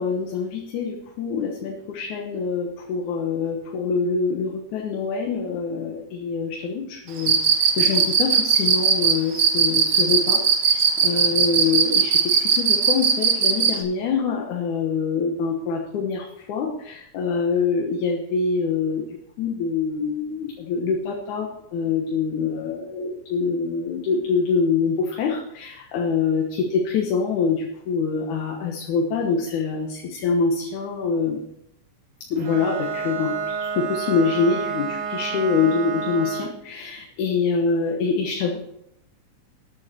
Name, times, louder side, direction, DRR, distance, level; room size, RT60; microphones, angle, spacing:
voice 1, 0.0-7.3 7.8-19.0 19.4-31.4 32.3-38.6, left 5 dB, 75° left, 1 dB, 2.7 m, -25 dB
Cricket, 7.2-13.8, right 7 dB, 50° right, 2.0 m, -18 dB
Bowed string instrument, 32.4-36.6, right 6 dB, 80° right, 3.0 m, -29 dB
13.0 x 9.6 x 4.4 m, 0.81 s
omnidirectional pair, 3.5 m